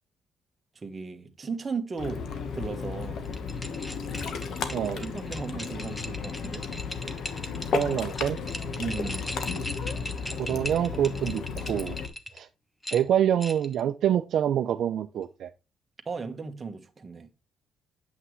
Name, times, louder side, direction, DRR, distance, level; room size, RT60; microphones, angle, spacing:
voice 1, 0.8-2.3 2.5-3.2 5.0-6.7 8.8-9.3 16.0-17.3, right 4 dB, 30° right, 1.3 m, -36 dB
Ocean, 2.0-12.1, left 5 dB, 70° left, 1.2 m, -34 dB
sound 1, 3.3-12.4 12.8-13.8, left 1 dB, 10° left, 1.1 m, -39 dB
voice 2, 7.7-8.4 10.4-12.0 12.3-12.5 12.9-15.5, right 10 dB, 70° right, 0.5 m, -26 dB
8.3 x 5.8 x 3.1 m
cardioid pair, 90°, 0 cm